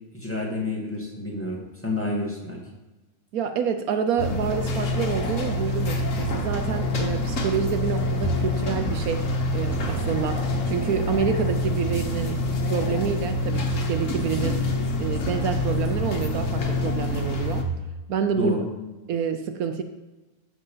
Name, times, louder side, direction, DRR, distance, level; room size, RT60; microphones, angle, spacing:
voice 1, 0.1-2.6 18.3-18.6, left 2 dB, 10° left, -3 dB, 2.1 m, -29 dB
voice 2, 3.3-12.4 12.7-14.6 15.0-17.7 18.1-18.6 19.1-19.8, right 6 dB, 75° right, 7 dB, 1.1 m, -28 dB
sound 1, 4.2-17.6, left 1 dB, 55° left, 1.5 m, -26 dB
sound 2, 5.5-15.7, right 2 dB, 15° right, 1.5 m, -39 dB
13.0 x 5.0 x 5.6 m, 1.1 s
omnidirectional pair, 1.6 m